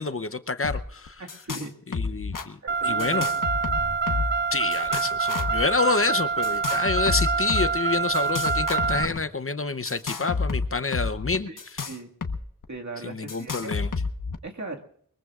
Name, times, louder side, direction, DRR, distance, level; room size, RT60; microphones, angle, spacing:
voice 1, 0.0-1.2 1.9-2.6 2.8-3.3 4.5-11.8 13.0-13.9, left 4 dB, 40° left, 11 dB, 0.8 m, -28 dB
sound 1, 0.6-1.7 1.9-2.5 3.0-4.4 4.7-5.6 6.4-7.7 8.1-9.2 9.8-12.4 12.6-12.7 13.3-14.3, left 4 dB, 70° left, 1.2 m, -30 dB
voice 2, 1.2-1.7 2.6-3.3 11.5-11.6 11.8-12.1 12.7-13.7 14.4-14.8, right 2 dB, 55° right, 2 dB, 2.0 m, -38 dB
Car, 2.7-9.1, right 5 dB, 30° right, 0.5 m, -26 dB
22.5 x 21.5 x 2.5 m, 0.65 s
wide cardioid pair, 70°, 34 cm